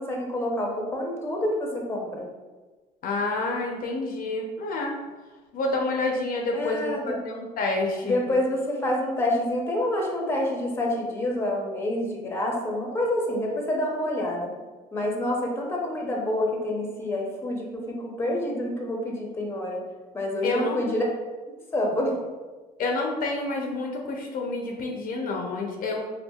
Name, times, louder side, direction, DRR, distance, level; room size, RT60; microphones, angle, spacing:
voice 1, 0.0-2.3 6.5-7.2 8.0-14.6 14.9-19.8 20.1-21.0 21.7-22.1, left 1 dB, 15° left, -1 dB, 0.7 m, -27 dB
voice 2, 3.0-5.0 5.5-8.2 20.4-20.9 22.8-26.1, left 2 dB, 55° left, 0 dB, 0.6 m, -28 dB
4.4 x 2.5 x 2.3 m, 1.3 s
cardioid pair, 110°, 17 cm